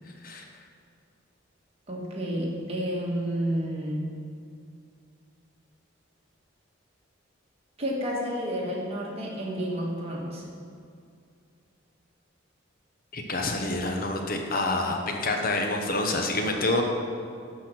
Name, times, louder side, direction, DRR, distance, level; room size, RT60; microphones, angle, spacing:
voice 1, 1.9-4.1 7.8-10.4, equal, 30° right, -3 dB, 1.6 m, -30 dB
voice 2, 13.1-16.8, left 2 dB, 45° left, 2 dB, 0.9 m, -27 dB
11.5 x 4.2 x 6.2 m, 2.3 s
head